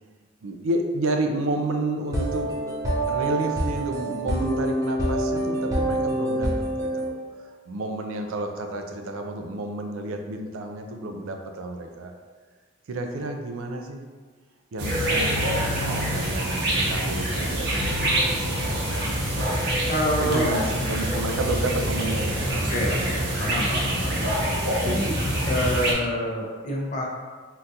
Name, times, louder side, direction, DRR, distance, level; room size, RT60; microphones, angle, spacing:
voice 1, 0.4-2.5 3.1-6.5 6.8-7.1 7.4-12.1 12.9-14.0 14.7-19.2 20.2-23.5 23.8-24.0, right 2 dB, 85° right, 4 dB, 0.4 m, -31 dB
sound 1, 2.0-7.1, right 1 dB, 15° right, 0.6 m, -26 dB
sound 2, 14.8-25.9, right 1 dB, 50° right, 0.7 m, -25 dB
voice 2, 19.9-20.4 22.7-24.2 24.8-25.1 25.5-27.0, equal, 35° left, -2 dB, 0.5 m, -27 dB
3.6 x 2.3 x 2.7 m, 1.5 s
head